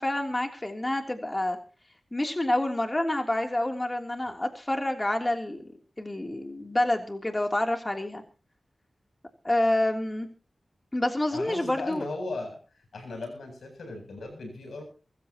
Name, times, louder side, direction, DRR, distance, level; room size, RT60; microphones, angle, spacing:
voice 1, 0.0-1.6 2.1-5.6 6.0-8.2 9.4-10.3 10.9-12.0, left 1 dB, 25° left, 4 dB, 3.2 m, -28 dB
voice 2, 11.3-12.6 12.9-14.8, left 2 dB, 85° left, 4 dB, 7.9 m, -37 dB
23.5 x 14.5 x 3.0 m, 0.36 s
cardioid pair, 45°, 0 cm